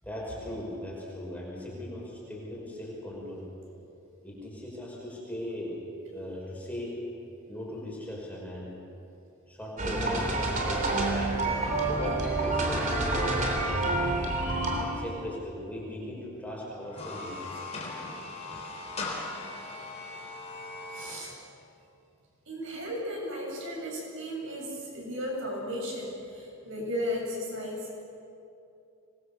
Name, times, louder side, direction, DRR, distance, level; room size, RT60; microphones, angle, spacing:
voice 1, 0.0-3.5 4.2-5.8 6.1-7.0 7.5-8.8 9.5-11.0 11.9-14.2 14.8-17.4 18.1-18.3 18.9-19.0, left 1 dB, 5° left, -4 dB, 5.8 m, -38 dB
sound 1, 9.8-14.9, right 2 dB, 35° right, 3.4 m, -28 dB
sound 2, 16.8-21.2, left 3 dB, 30° left, 3.7 m, -39 dB
voice 2, 20.9-21.3 22.5-27.8, equal, 60° right, -2 dB, 7.9 m, -35 dB
26.0 x 22.0 x 7.0 m, 2.7 s
head